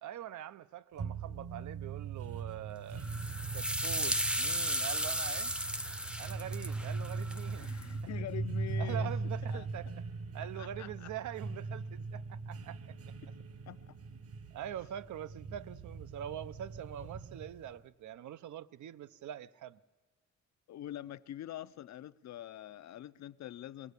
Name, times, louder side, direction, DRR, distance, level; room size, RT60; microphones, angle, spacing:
voice 1, 0.0-3.0 3.5-5.5 6.2-7.7 8.8-9.9 10.3-12.9 14.5-19.8, right 11 dB, 80° right, 0.6 m, -44 dB
sound 1, 1.0-17.8, right 4 dB, 55° right, 1.1 m, -40 dB
sound 2, 3.0-7.8, equal, 5° right, 0.6 m, -35 dB
voice 2, 7.6-9.2 9.5-9.7 10.4-11.1 13.7-13.8 20.7-23.9, left 12 dB, 65° left, 0.6 m, -45 dB
21.5 x 18.0 x 8.2 m
wide cardioid pair, 145°, 29 cm